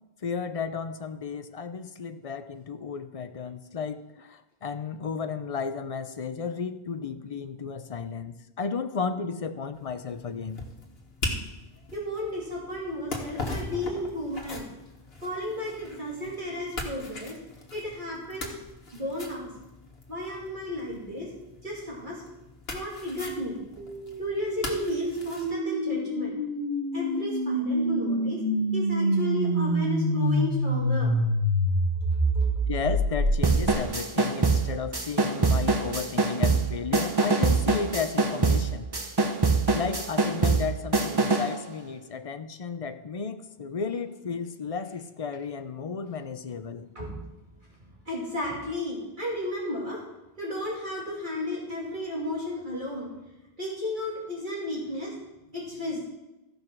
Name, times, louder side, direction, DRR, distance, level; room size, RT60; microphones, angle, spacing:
voice 1, 0.2-10.6 32.7-38.9 39.7-46.9, left 5 dB, 40° left, 10 dB, 0.6 m, -33 dB
sound 1, 9.7-25.6, left 2 dB, 65° left, 1.7 m, -40 dB
voice 2, 11.9-14.7 15.2-17.4 17.7-18.6 18.9-19.5 20.1-21.3 21.6-22.2 22.7-23.6 24.2-26.4 26.9-28.4 28.7-31.2 32.3-32.6 46.9-47.2 47.8-50.0 50.4-53.1 53.6-55.1 55.5-56.1, left 1 dB, 50° right, -5 dB, 2.9 m, -33 dB
sound 2, 23.8-33.8, equal, 90° right, 1.6 m, -26 dB
sound 3, 33.4-41.6, right 3 dB, 25° right, 0.8 m, -24 dB
14.5 x 5.2 x 6.0 m, 0.99 s
omnidirectional pair, 1.1 m